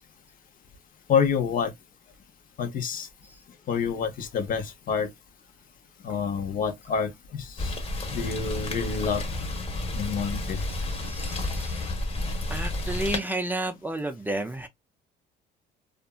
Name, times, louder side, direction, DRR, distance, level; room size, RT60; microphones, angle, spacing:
voice 1, 1.1-1.7 2.6-3.1 3.7-5.1 6.0-7.8 8.1-9.3 9.9-10.6, left 6 dB, 55° left, 0.8 m, -28 dB
Rain, 7.6-13.2, left 2 dB, 35° left, 1.1 m, -31 dB
voice 2, 10.9-11.9 12.5-14.7, right 1 dB, 10° right, 0.4 m, -32 dB
2.7 x 2.5 x 2.3 m
cardioid pair, 110°, 17 cm